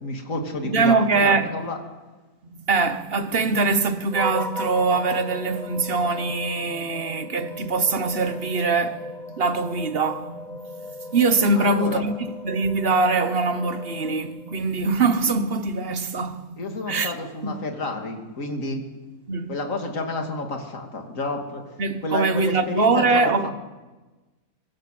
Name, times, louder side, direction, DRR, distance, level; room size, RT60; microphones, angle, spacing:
voice 1, 0.0-1.8 11.5-12.0 16.6-18.8 19.5-21.6 22.0-23.5, left 2 dB, 50° left, 3.1 m, -30 dB
voice 2, 0.6-1.5 2.6-10.6 11.1-12.1 12.4-17.1 17.4-17.5 19.3-19.5 21.8-23.5, right 3 dB, 35° right, 1.3 m, -23 dB
sound 1, 4.1-14.7, left 1 dB, ahead, 0.6 m, -37 dB
24.5 x 22.0 x 7.8 m
omnidirectional pair, 1.8 m